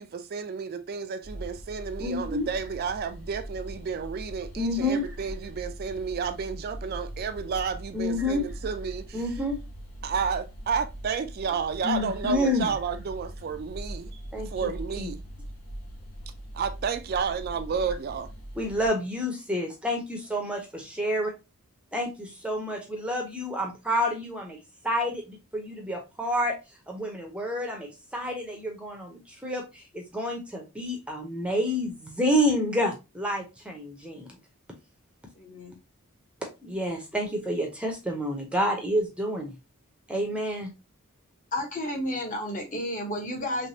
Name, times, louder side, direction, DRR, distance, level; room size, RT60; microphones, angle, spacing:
voice 1, 0.0-9.2 10.0-14.2 14.5-15.2 16.5-18.3, right 6 dB, 45° right, 0.3 m, -31 dB
sound 1, 1.2-18.9, right 1 dB, 80° left, 1.1 m, -41 dB
voice 2, 2.0-2.5 4.6-5.1 7.9-8.4 9.1-9.6 11.8-12.7 14.3-14.7 15.0-15.1 18.6-21.3 21.9-24.6 24.8-26.6 26.9-34.4 36.6-39.5 40.1-40.7, left 1 dB, 5° right, 0.6 m, -29 dB
voice 3, 35.4-35.8 41.5-43.7, left 1 dB, 35° left, 0.9 m, -32 dB
3.3 x 3.2 x 2.6 m
head